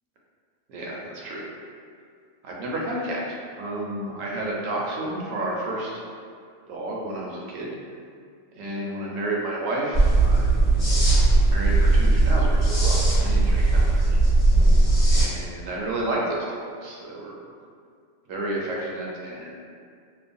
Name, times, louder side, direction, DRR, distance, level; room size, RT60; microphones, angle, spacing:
voice 1, 0.7-1.4 2.4-5.9 6.7-7.8 8.5-10.6 11.5-14.2 15.1-17.4 18.3-19.5, right 1 dB, 75° right, -3 dB, 0.9 m, -31 dB
sound 1, 9.9-15.2, right 2 dB, 30° left, 1.2 m, -18 dB
3.0 x 2.0 x 2.5 m, 2.2 s
omnidirectional pair, 1.4 m